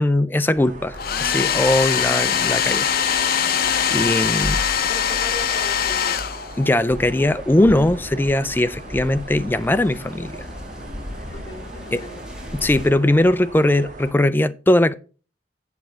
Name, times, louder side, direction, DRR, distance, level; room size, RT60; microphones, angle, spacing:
voice 1, 0.0-2.9 3.9-4.6 6.6-10.4 11.9-12.1 12.5-14.9, left 1 dB, 10° left, 0.3 m, -20 dB
sound 1, 0.5-14.1, right 1 dB, 45° right, 1.6 m, -37 dB
Domestic sounds home sounds, 0.9-6.8, left 8 dB, 55° left, 0.6 m, -22 dB
voice 2, 4.9-6.2 11.3-12.2, left 2 dB, 25° left, 3.6 m, -37 dB
sound 2, 6.9-12.9, left 1 dB, 5° right, 1.7 m, -37 dB
8.2 x 6.4 x 4.4 m
head